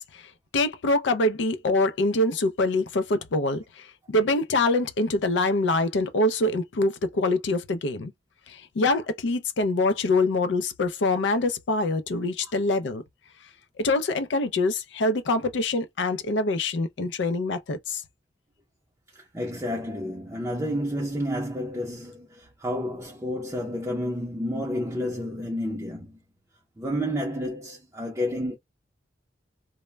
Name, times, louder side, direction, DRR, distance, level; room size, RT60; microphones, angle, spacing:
voice 1, 0.0-8.1 8.5-13.0 13.8-18.0, left 2 dB, 75° left, 0.4 m, -25 dB
voice 2, 19.1-26.2 26.8-28.6, equal, 15° right, 0.5 m, -30 dB
2.1 x 2.1 x 3.1 m
head